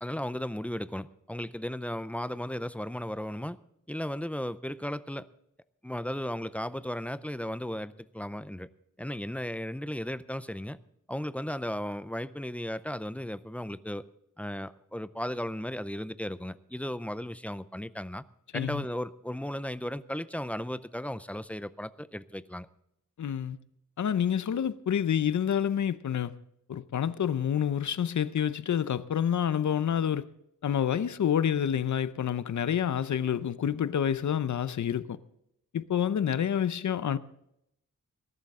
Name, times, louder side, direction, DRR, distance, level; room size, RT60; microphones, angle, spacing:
voice 1, 0.0-3.6 3.9-5.3 5.8-8.7 9.0-10.8 11.1-14.1 14.4-18.2 18.5-22.7, left 1 dB, 5° left, 0.4 m, -35 dB
voice 2, 23.2-23.6 24.0-26.3 26.7-30.2 30.6-35.2 35.7-37.2, left 9 dB, 65° left, 0.7 m, -28 dB
20.0 x 12.0 x 3.6 m
wide cardioid pair, 145°, 32 cm